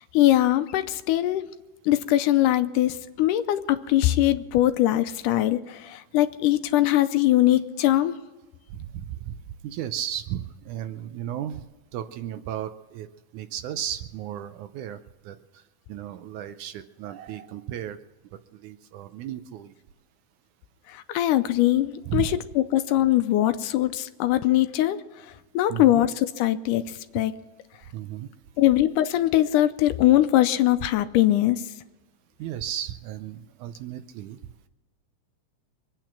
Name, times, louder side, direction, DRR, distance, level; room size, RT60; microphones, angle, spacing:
voice 1, 0.1-1.4 1.9-8.2 20.9-25.0 25.5-27.3 28.6-31.6, left 14 dB, 80° left, 10 dB, 2.1 m, -22 dB
voice 2, 8.7-9.4 9.6-11.7 11.9-13.1 13.3-15.0 15.2-15.4 15.9-18.0 18.5-19.7 22.1-22.3 25.7-26.0 27.9-28.3 32.4-34.4, right 11 dB, 75° right, 10 dB, 1.9 m, -34 dB
24.0 x 9.2 x 5.9 m, 1.1 s
omnidirectional pair, 3.9 m